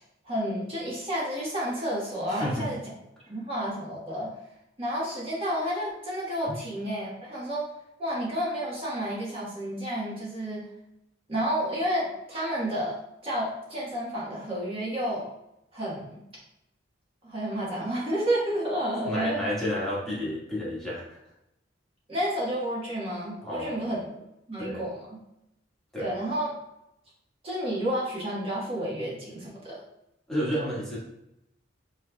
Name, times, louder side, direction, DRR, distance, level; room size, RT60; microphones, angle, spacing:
voice 1, 0.2-2.8 3.3-4.3 4.8-7.6 8.0-10.7 11.3-12.9 13.2-15.2 15.7-16.1 17.2-19.5 22.1-24.1 24.5-25.2 26.0-26.5 27.4-29.8, equal, 30° right, -7 dB, 1.3 m, -30 dB
voice 2, 2.3-2.7 6.5-6.6 19.1-21.2 23.4-23.9 24.6-24.8 25.9-26.1 30.3-31.0, equal, 5° left, -8 dB, 1.4 m, -31 dB
7.2 x 2.9 x 2.2 m, 0.84 s
head